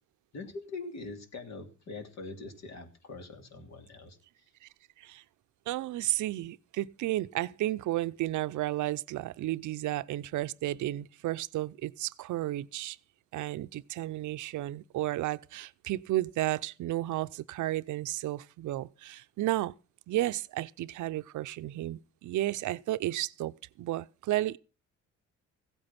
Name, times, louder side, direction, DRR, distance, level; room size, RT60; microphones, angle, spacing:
voice 1, 0.3-4.2, left 3 dB, 60° left, 3.1 m, -43 dB
voice 2, 5.7-13.0 13.3-19.7 20.1-24.6, right 15 dB, 75° right, 0.7 m, -33 dB
16.0 x 8.8 x 5.9 m
cardioid pair, 90°, 30 cm